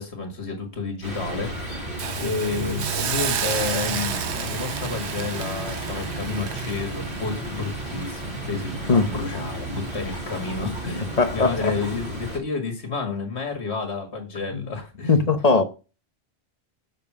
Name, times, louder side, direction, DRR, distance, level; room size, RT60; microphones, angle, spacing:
voice 1, 0.0-1.8 2.1-15.1, left 4 dB, 80° left, 2.1 m, -30 dB
sound 1, 1.0-12.4, right 1 dB, 25° right, 3.3 m, -33 dB
Hiss, 2.0-9.0 9.4-9.6, right 8 dB, 90° right, 1.1 m, -32 dB
voice 2, 11.2-11.7 14.5-14.6 15.1-15.6, left 4 dB, 40° left, 1.0 m, -19 dB
7.3 x 5.3 x 6.0 m
omnidirectional pair, 1.1 m